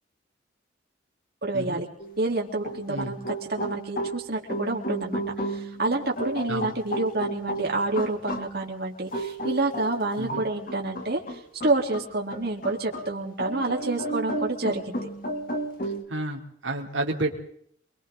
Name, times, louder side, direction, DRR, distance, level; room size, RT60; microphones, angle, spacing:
voice 1, 1.4-1.9 2.2-15.0, right 2 dB, 55° right, 0 dB, 3.8 m, -28 dB
sound 1, 2.0-2.2 2.6-8.4 9.1-13.1 13.4-16.0, right 1 dB, 45° left, 3.1 m, -33 dB
voice 2, 15.8-17.3, right 2 dB, 85° right, 1 dB, 3.4 m, -31 dB
28.0 x 23.0 x 4.0 m, 0.64 s
head